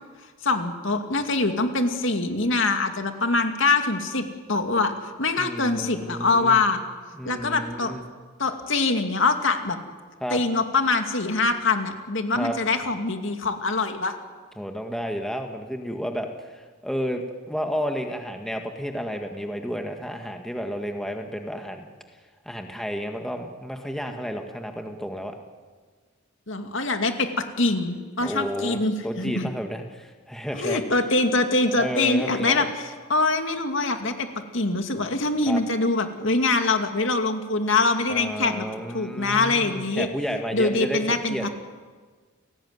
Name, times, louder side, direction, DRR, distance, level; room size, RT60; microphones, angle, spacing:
voice 1, 0.4-4.9 5.2-6.8 7.2-7.9 8.4-9.8 10.3-14.1 26.5-29.5 30.5-34.3 34.5-38.7 38.9-40.1 40.5-41.5, left 3 dB, 65° left, 6 dB, 2.5 m, -24 dB
voice 2, 5.4-6.6 7.2-8.0 10.2-10.4 12.3-12.5 14.6-21.9 22.5-25.4 28.2-30.8 31.8-32.7 35.5-35.6 38.1-41.5, equal, ahead, 4 dB, 1.7 m, -31 dB
29.5 x 18.0 x 9.7 m, 1.5 s
head